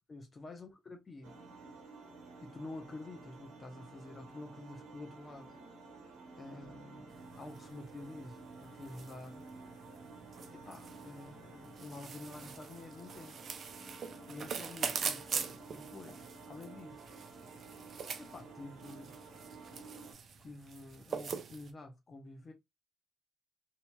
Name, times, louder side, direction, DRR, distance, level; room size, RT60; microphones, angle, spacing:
voice 1, 0.1-1.3 2.4-5.6 6.4-9.5 10.5-13.4 14.3-17.1 18.2-19.2 20.4-22.5, left 2 dB, 35° left, 0.8 m, -49 dB
sound 1, 1.2-20.1, right 3 dB, 90° right, 1.0 m, -52 dB
sound 2, 7.1-21.7, right 6 dB, 55° right, 0.5 m, -44 dB
2.8 x 2.8 x 2.2 m
cardioid pair, 90°, 0 cm